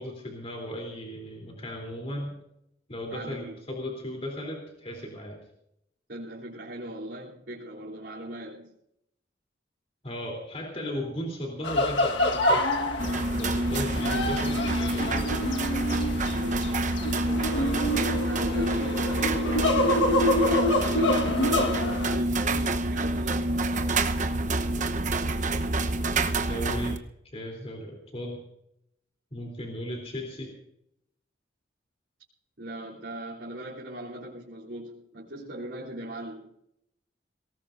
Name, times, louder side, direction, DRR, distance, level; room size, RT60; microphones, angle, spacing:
voice 1, 0.0-2.3 2.9-5.4 10.0-12.7 13.4-15.3 16.1-16.3 26.4-28.4 29.3-30.5, equal, 35° left, 0 dB, 3.5 m, -36 dB
voice 2, 3.1-3.6 6.1-8.7 17.5-24.0 32.6-36.5, right 1 dB, 70° right, -7 dB, 3.3 m, -39 dB
sound 1, 11.6-22.2, left 1 dB, 75° left, 1.6 m, -27 dB
sound 2, 13.0-27.0, right 2 dB, 40° right, 1.0 m, -27 dB
22.5 x 18.5 x 2.6 m, 0.78 s
head